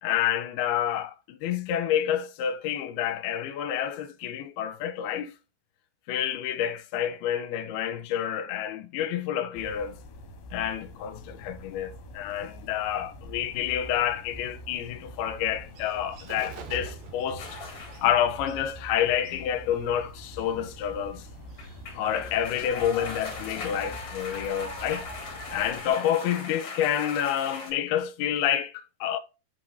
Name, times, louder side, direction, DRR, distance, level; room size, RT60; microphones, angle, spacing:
voice 1, 0.0-5.3 6.1-10.0 10.5-17.6 18.0-21.2 22.0-29.2, left 10 dB, 85° left, 2.5 m, -28 dB
sound 1, 9.6-25.9, left 1 dB, 70° left, 2.4 m, -46 dB
Bird, 14.2-25.7, right 6 dB, 90° right, 1.5 m, -49 dB
sound 2, 17.4-18.1 21.4-27.7, left 3 dB, 35° left, 2.1 m, -39 dB
8.0 x 4.9 x 2.6 m
omnidirectional pair, 4.7 m